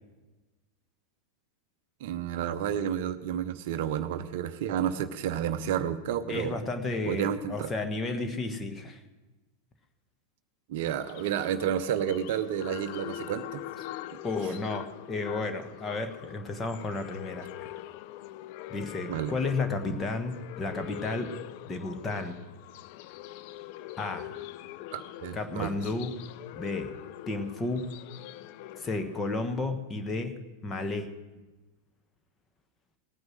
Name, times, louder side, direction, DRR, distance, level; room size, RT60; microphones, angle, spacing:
voice 1, 2.0-6.6 7.1-7.7 10.7-13.6 19.1-19.3 24.9-25.7, right 9 dB, 50° right, 10 dB, 0.7 m, -31 dB
voice 2, 6.3-9.0 14.2-17.7 18.7-21.3 21.6-22.4 24.0-24.3 25.3-26.1 26.5-26.9 27.3-27.9 28.8-31.1, left 3 dB, 20° left, 7 dB, 1.3 m, -32 dB
sound 1, 11.0-29.6, left 14 dB, 45° left, 0.4 m, -43 dB
18.5 x 9.6 x 6.2 m, 1.2 s
figure-of-eight pair, 90°, 0 cm